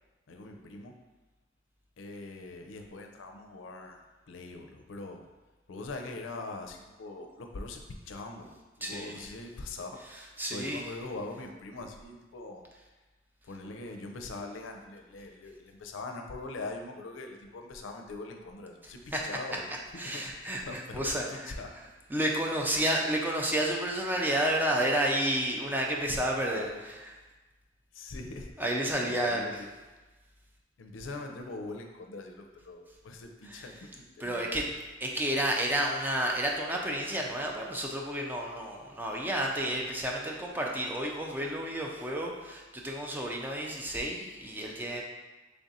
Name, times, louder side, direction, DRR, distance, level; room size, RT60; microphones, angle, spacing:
voice 1, 0.3-1.0 2.0-5.2 5.7-7.8 8.1-10.0 10.5-12.6 13.4-19.7 20.1-21.7 26.5-26.6 27.9-28.5 29.0-29.7 30.8-34.6, left 2 dB, 85° left, 4 dB, 0.4 m, -42 dB
voice 2, 8.8-9.3 10.0-10.8 19.1-19.2 19.7-21.8 22.1-27.1 28.6-29.6 33.4-33.7 34.2-34.7 35.0-45.0, right 1 dB, 10° right, -1 dB, 0.4 m, -31 dB
3.4 x 2.5 x 4.0 m, 1.2 s
head